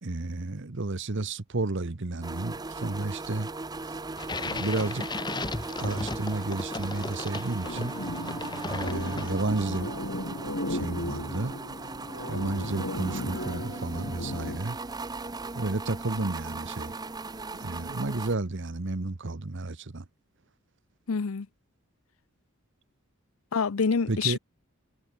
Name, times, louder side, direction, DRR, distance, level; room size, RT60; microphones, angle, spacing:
voice 1, 0.0-3.5 4.5-5.4 5.8-7.9 8.7-9.9 10.7-11.5 12.3-14.8 15.5-16.9 17.5-20.0 24.1-24.4, right 2 dB, 60° right, 1.1 m, -32 dB
sound 1, 2.2-18.3, right 3 dB, 20° right, 0.7 m, -38 dB
sound 2, 4.2-9.7, left 3 dB, 20° left, 1.1 m, -36 dB
sound 3, 7.6-14.6, left 1 dB, 65° left, 3.2 m, -36 dB
voice 2, 21.1-21.5 23.5-24.4, left 5 dB, 90° left, 0.7 m, -26 dB
head